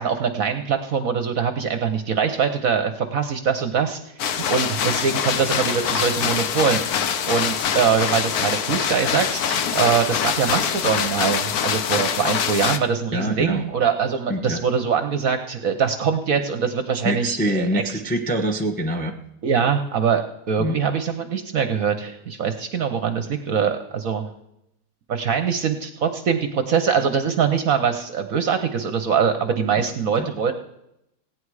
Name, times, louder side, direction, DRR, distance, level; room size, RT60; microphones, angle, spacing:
voice 1, 0.0-4.0 4.5-6.8 7.3-18.0 19.4-24.3 25.1-30.5, right 6 dB, 60° right, 8 dB, 1.0 m, -23 dB
sound 1, 4.2-12.8, left 8 dB, 65° left, 1.1 m, -24 dB
voice 2, 13.1-13.6 14.3-14.6 17.0-19.2 20.6-20.8 30.2-30.3, equal, 10° left, 4 dB, 0.5 m, -25 dB
16.5 x 9.4 x 4.8 m, 0.82 s
omnidirectional pair, 2.1 m